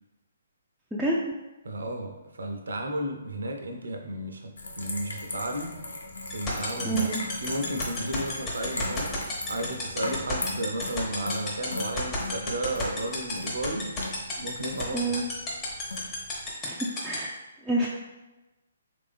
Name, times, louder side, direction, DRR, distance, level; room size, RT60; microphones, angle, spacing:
voice 1, 0.9-1.3 6.8-7.2 14.9-15.2 16.6-17.3 17.6-17.9, right 2 dB, 5° right, -6 dB, 0.4 m, -28 dB
voice 2, 1.6-5.8 6.3-9.2 9.4-14.0 14.4-15.3, right 1 dB, 70° right, 3 dB, 0.6 m, -33 dB
sound 1, 4.6-16.4, left 2 dB, 75° left, 0.7 m, -39 dB
sound 2, 6.3-17.2, left 4 dB, 20° left, 1.0 m, -31 dB
3.3 x 2.6 x 3.5 m, 1.1 s
figure-of-eight pair, 135°, 0 cm